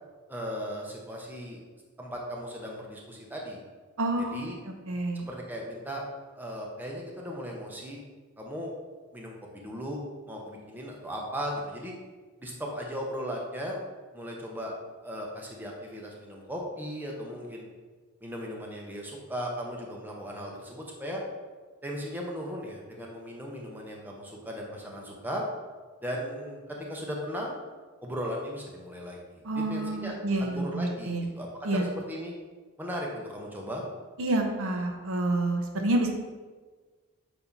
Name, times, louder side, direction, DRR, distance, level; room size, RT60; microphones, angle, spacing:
voice 1, 0.3-1.6 2.0-3.6 4.3-4.6 5.1-6.0 6.4-8.0 8.4-8.7 9.1-10.0 10.3-11.9 12.4-13.8 14.1-14.7 15.0-17.6 18.2-21.2 21.8-25.4 26.0-27.6 28.0-32.3 32.8-33.8, equal, 10° right, -2 dB, 0.7 m, -37 dB
voice 2, 4.0-5.2 29.4-31.2 31.6-31.9 34.2-36.1, right 2 dB, 65° right, 3 dB, 0.7 m, -28 dB
7.1 x 2.8 x 5.3 m, 1.4 s
head